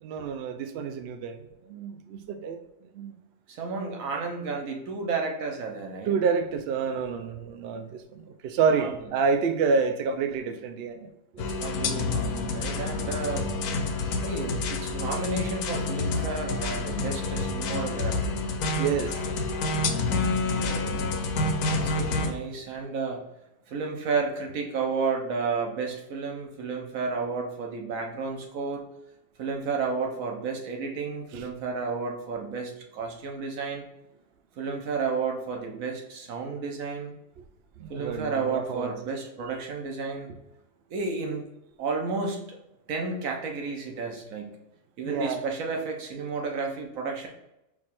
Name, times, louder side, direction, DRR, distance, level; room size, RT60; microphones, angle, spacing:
voice 1, 0.0-2.6 2.9-3.1 6.1-11.1 18.8-19.2 31.3-31.5 37.8-38.9 45.0-45.4, right 5 dB, 80° right, 7 dB, 0.5 m, -28 dB
voice 2, 3.5-6.1 8.7-8.9 11.4-13.5 14.2-18.4 20.5-21.1 21.7-23.2 23.7-28.8 29.4-33.8 34.6-37.1 37.9-40.3 40.9-41.4 41.8-42.6 42.9-44.5 45.0-47.3, right 4 dB, 65° right, 1 dB, 1.2 m, -32 dB
sound 1, 11.4-22.3, left 3 dB, 85° left, 1.1 m, -28 dB
4.7 x 2.4 x 4.2 m, 0.86 s
omnidirectional pair, 1.6 m